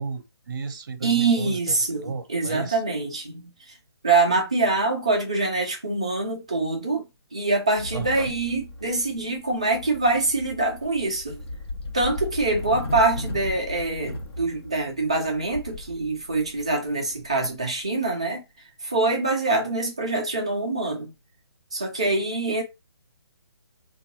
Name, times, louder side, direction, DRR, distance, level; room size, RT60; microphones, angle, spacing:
voice 1, 0.0-2.8 7.9-8.3, right 5 dB, 45° right, 0.6 m, -34 dB
voice 2, 1.0-3.5 4.0-7.1 7.3-11.4 11.9-18.4 18.8-21.1 21.7-22.6, right 3 dB, 15° right, 0.3 m, -24 dB
sound 1, 7.8-18.0, left 2 dB, 70° left, 0.9 m, -37 dB
3.6 x 2.2 x 2.9 m
hypercardioid pair, 175°, 14 cm